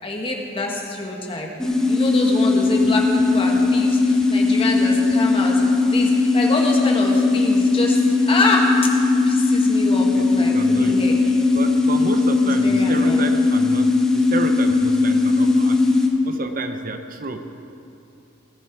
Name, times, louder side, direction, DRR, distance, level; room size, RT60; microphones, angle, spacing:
voice 1, 0.0-1.5 1.9-5.6 5.9-8.7 9.2-11.1 12.4-13.2, left 2 dB, 25° left, 0 dB, 1.7 m, -26 dB
sound 1, 1.6-16.1, left 3 dB, 5° left, 1.1 m, -18 dB
voice 2, 2.7-3.1 10.1-11.2 11.5-15.8 16.2-17.7, right 3 dB, 45° right, 7 dB, 0.7 m, -31 dB
19.0 x 10.5 x 4.7 m, 2.7 s
head